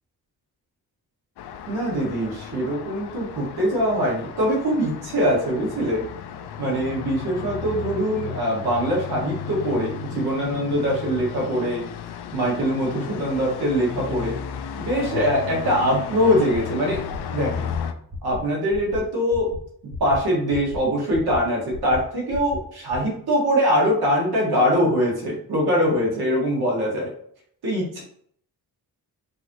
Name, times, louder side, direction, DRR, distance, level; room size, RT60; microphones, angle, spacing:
Traffic noise roadway noise, 1.4-17.9, left 8 dB, 85° left, 0.6 m, -34 dB
voice 1, 1.7-6.1 6.6-11.8 12.3-14.4 14.8-17.0 17.3-17.7 18.2-19.5 19.8-27.1 27.6-28.0, equal, 75° right, -3 dB, 2.0 m, -23 dB
sound 1, 16.5-16.6 16.9-17.2 17.5-17.8 18.1-18.4 18.7-19.0 19.3-19.6 19.9-20.2 20.5-20.8 21.1-21.4 21.7-22.0 22.3-22.6 22.9-23.0, left 3 dB, 30° right, 1.3 m, -35 dB
5.5 x 3.2 x 3.0 m, 0.63 s
wide cardioid pair, 120°, 38 cm